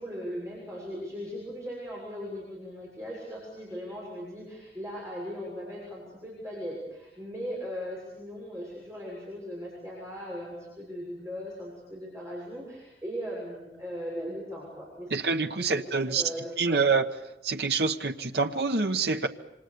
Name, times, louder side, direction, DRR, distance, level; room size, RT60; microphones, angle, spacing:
voice 1, 0.0-15.1 15.6-16.9, equal, 15° right, -5 dB, 6.8 m, -38 dB
voice 2, 15.1-16.2 16.6-17.0 17.4-19.3, right 4 dB, 70° right, 7 dB, 1.2 m, -26 dB
27.5 x 25.5 x 7.0 m, 0.92 s
head